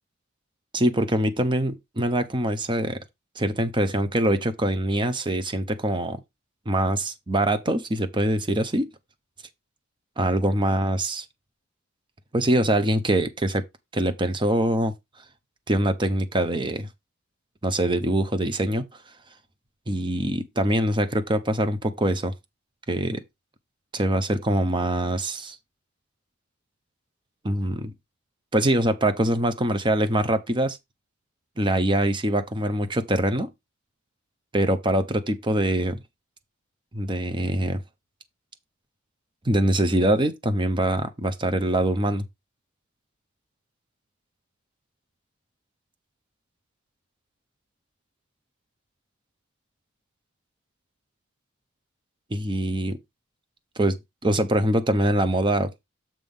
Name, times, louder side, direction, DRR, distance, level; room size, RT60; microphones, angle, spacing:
voice 1, 0.7-3.0 3.4-6.2 6.7-8.9 10.2-11.2 12.3-13.6 13.9-14.9 15.7-16.9 17.6-18.9 19.9-22.3 22.9-23.2 23.9-25.6 27.4-27.9 28.5-30.8 31.6-33.5 34.5-36.0 36.9-37.8 39.4-42.2 52.3-53.0 53.8-54.0 54.2-55.7, right 1 dB, 20° right, 0.8 m, -23 dB
7.5 x 3.5 x 5.4 m
head